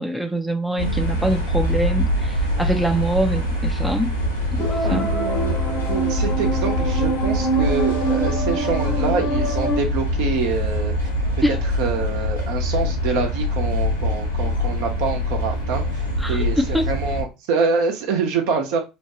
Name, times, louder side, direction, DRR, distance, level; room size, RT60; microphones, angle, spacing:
voice 1, 0.0-4.2 4.5-5.1 11.4-11.6 16.2-16.9, right 1 dB, ahead, 0.5 m, -24 dB
sound 1, 0.8-17.2, left 1 dB, 85° left, 0.7 m, -24 dB
sound 2, 4.6-9.8, right 2 dB, 60° left, 0.9 m, -25 dB
voice 2, 4.8-5.6 5.9-10.9 11.5-18.8, right 5 dB, 60° right, 0.7 m, -26 dB
2.9 x 2.2 x 2.9 m
figure-of-eight pair, 65°, 0 cm